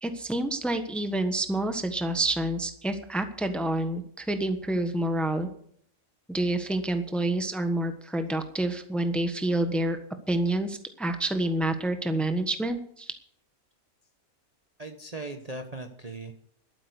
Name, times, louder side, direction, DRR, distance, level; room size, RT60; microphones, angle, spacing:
voice 1, 0.0-5.5 6.3-10.0 10.3-13.1, right 1 dB, ahead, 8 dB, 1.2 m, -28 dB
voice 2, 14.8-16.3, right 2 dB, 30° right, 5 dB, 1.1 m, -38 dB
12.5 x 9.0 x 8.1 m, 0.63 s
omnidirectional pair, 1.6 m